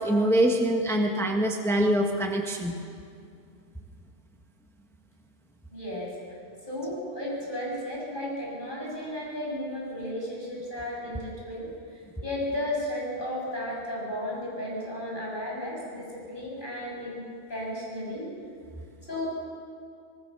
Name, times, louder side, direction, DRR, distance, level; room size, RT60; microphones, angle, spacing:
voice 1, 0.0-2.7, right 1 dB, ahead, 2 dB, 1.5 m, -24 dB
voice 2, 5.7-6.1 6.7-17.2 17.5-18.3 19.1-19.3, left 1 dB, 40° left, -4 dB, 7.5 m, -34 dB
26.5 x 19.0 x 6.8 m, 2.4 s
omnidirectional pair, 1.3 m